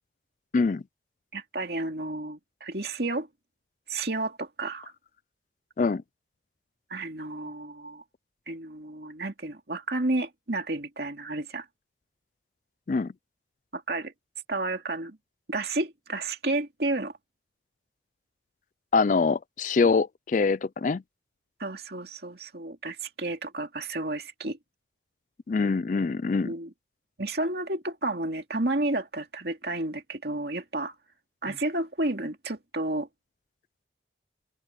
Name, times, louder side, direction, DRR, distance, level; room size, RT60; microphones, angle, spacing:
voice 1, 1.3-3.3 3.9-4.9 6.9-8.0 8.5-11.7 13.7-14.1 14.5-15.2 15.5-17.1 21.6-24.6 26.4-26.7 27.2-30.9 31.4-33.1, right 2 dB, 60° right, 2.6 m, -31 dB
voice 2, 18.9-21.0 25.5-26.5, left 4 dB, 40° left, 0.4 m, -24 dB
open air
head